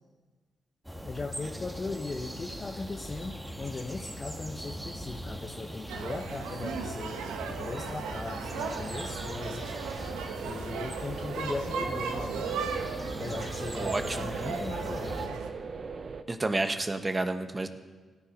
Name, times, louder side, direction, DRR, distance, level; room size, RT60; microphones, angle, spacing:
sound 1, 0.8-15.3, equal, 10° right, 1.9 m, -41 dB
voice 1, 1.0-9.7 10.4-12.7 13.2-15.5, left 3 dB, 40° left, 3 dB, 0.9 m, -38 dB
sound 2, 5.9-15.5, right 5 dB, 90° right, 1.1 m, -37 dB
sound 3, 8.4-16.2, right 5 dB, 55° right, 0.8 m, -41 dB
voice 2, 13.7-14.3 16.3-17.7, right 2 dB, 30° right, 7 dB, 1.3 m, -30 dB
16.5 x 9.8 x 5.3 m, 1.4 s
supercardioid pair, 55°, 0 cm